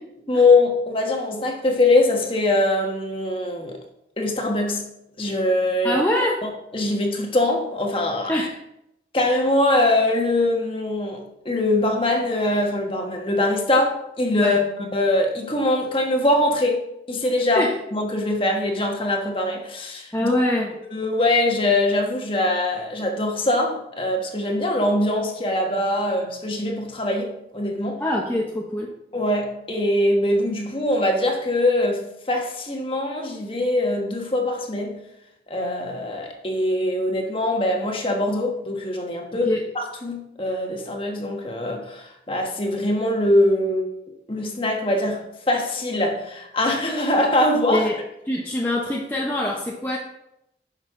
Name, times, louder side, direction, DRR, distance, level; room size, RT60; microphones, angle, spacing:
voice 1, 0.3-3.8 4.2-4.9 5.2-6.0 6.4-8.5 9.1-17.7 17.9-20.4 20.9-28.0 29.1-35.0 35.5-43.9 44.3-47.8, left 1 dB, 30° left, 2 dB, 1.4 m, -22 dB
voice 2, 5.8-6.4 8.3-8.6 14.4-14.6 17.5-17.7 20.1-20.7 28.0-28.9 39.4-39.6 47.7-50.0, left 1 dB, 10° left, -2 dB, 0.8 m, -24 dB
11.0 x 6.5 x 3.7 m, 0.82 s
head